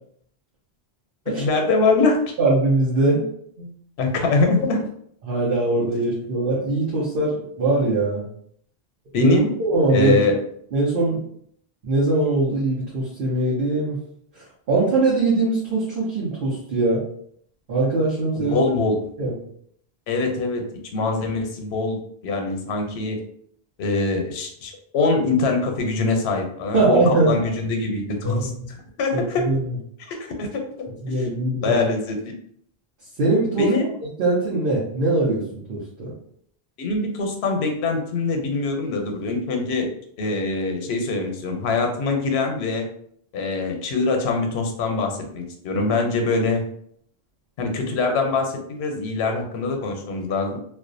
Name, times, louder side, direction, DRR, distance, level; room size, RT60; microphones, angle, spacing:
voice 1, 1.3-2.2 4.0-4.8 9.1-9.5 9.9-10.4 18.4-19.0 20.1-20.6 20.9-23.2 23.8-28.5 29.0-29.4 30.0-30.6 31.1-31.3 31.6-32.3 33.6-33.8 36.8-39.9 40.2-42.8 43.3-46.6 47.6-50.6, left 3 dB, 85° left, 3 dB, 0.8 m, -23 dB
voice 2, 2.4-3.2 3.6-3.7 5.2-8.3 9.2-10.2 10.7-11.2 11.8-14.0 14.3-17.0 17.7-18.6 19.2-19.4 26.7-27.3 28.2-28.7 29.1-29.8 31.0-31.8 33.2-33.8 34.2-35.4 35.7-36.1, right 2 dB, 65° right, -6 dB, 0.9 m, -21 dB
2.3 x 2.1 x 2.5 m, 0.66 s
omnidirectional pair, 1.0 m